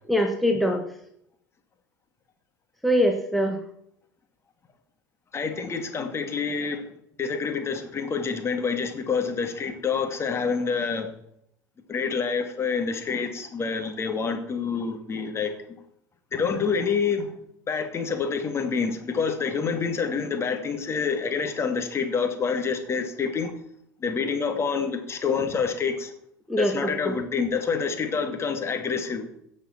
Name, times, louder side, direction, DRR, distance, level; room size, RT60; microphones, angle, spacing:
voice 1, 0.1-0.8 2.8-3.5 26.5-27.1, equal, ahead, 3 dB, 1.6 m, -23 dB
voice 2, 5.3-6.8 7.2-11.1 11.9-15.5 16.3-17.3 17.7-23.5 24.0-26.1 26.6-29.3, left 5 dB, 30° left, 5 dB, 2.3 m, -27 dB
17.0 x 6.6 x 5.9 m, 0.72 s
figure-of-eight pair, 70°, 9 cm